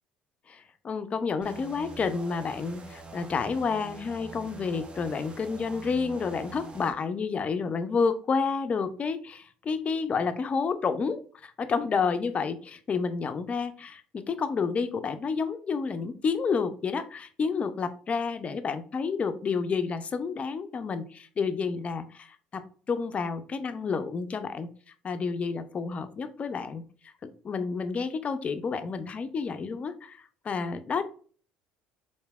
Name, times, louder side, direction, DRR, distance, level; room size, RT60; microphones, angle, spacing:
voice 1, 0.5-24.7 25.0-31.0, left 5 dB, 35° left, 10 dB, 0.4 m, -30 dB
sound 1, 1.4-6.9, right 4 dB, 30° right, 0.5 m, -45 dB
3.2 x 2.6 x 2.3 m, 0.43 s
hypercardioid pair, 65°, 4 cm